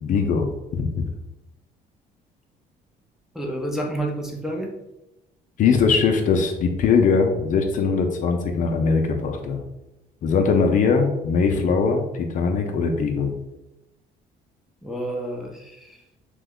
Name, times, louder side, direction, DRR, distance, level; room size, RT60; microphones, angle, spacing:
voice 1, 0.0-1.1 5.6-9.6 10.2-13.3, left 5 dB, 50° left, 4 dB, 0.4 m, -21 dB
voice 2, 3.3-4.7 14.8-16.0, right 1 dB, ahead, -1 dB, 0.5 m, -29 dB
2.9 x 2.1 x 3.5 m, 0.92 s
cardioid pair, 110°, 17 cm